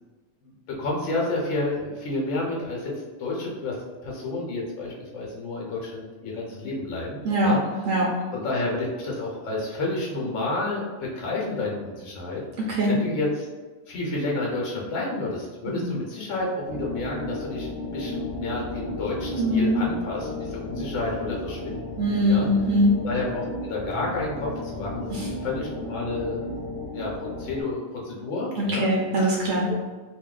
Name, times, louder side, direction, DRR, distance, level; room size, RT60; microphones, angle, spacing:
voice 1, 0.4-2.9 3.2-3.8 4.0-7.6 8.3-12.4 12.9-13.5 13.9-22.0 22.3-22.5 23.0-25.1 25.4-26.4 26.9-28.9 29.7-29.8, left 2 dB, 70° left, -3 dB, 1.1 m, -30 dB
voice 2, 12.6-12.9 15.7-15.9 19.4-19.9 20.7-20.8 22.0-22.9 25.1-25.3 28.6-29.7, equal, 70° right, -3 dB, 0.9 m, -22 dB
sound 1, 16.7-27.6, left 2 dB, 40° left, 0.6 m, -34 dB
2.6 x 2.2 x 3.7 m, 1.3 s
omnidirectional pair, 1.4 m